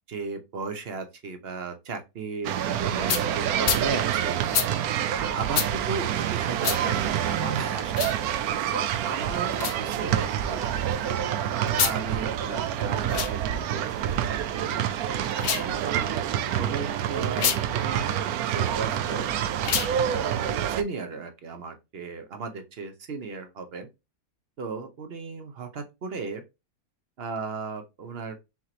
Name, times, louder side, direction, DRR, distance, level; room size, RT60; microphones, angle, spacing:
voice 1, 0.1-4.4 5.1-8.0 8.7-10.7 11.8-13.4 13.7-14.9 15.5-16.2 16.5-18.2 18.5-19.3 20.0-23.9 24.6-26.4 27.2-28.4, right 4 dB, 50° right, 0.9 m, -35 dB
sound 1, 2.4-20.8, right 10 dB, 75° right, 1.0 m, -27 dB
sound 2, 3.1-3.2 3.6-3.8 4.5-4.7 5.5-5.7 6.6-6.8 7.9-8.2 9.5-9.8 11.7-12.0 13.0-13.3 15.3-15.7 17.3-17.6 19.6-19.9, left 9 dB, 70° left, 0.5 m, -26 dB
5.8 x 3.0 x 2.8 m
omnidirectional pair, 1.6 m